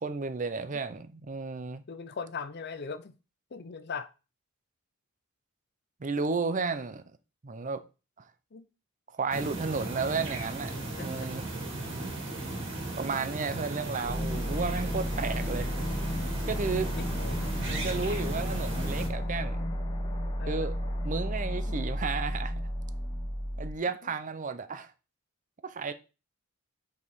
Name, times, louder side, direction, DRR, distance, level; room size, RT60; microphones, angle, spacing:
voice 1, 0.0-1.8 6.0-7.0 7.4-7.8 9.1-10.7 11.0-11.4 13.0-15.7 16.5-16.9 17.7-19.7 20.5-20.7 21.0-22.5 23.6-24.9 25.6-25.9, right 4 dB, 35° right, 0.6 m, -33 dB
voice 2, 1.9-3.2 3.5-4.1 8.5-8.7 10.8-11.3 12.0-12.1 13.5-13.6 16.9-17.5 20.4-20.7 21.7-21.8 24.0-24.1, left 5 dB, 50° left, 0.6 m, -40 dB
sound 1, 9.3-19.1, right 2 dB, 60° right, 2.4 m, -36 dB
sound 2, 14.0-23.7, equal, 25° left, 1.1 m, -32 dB
5.5 x 4.4 x 4.7 m
head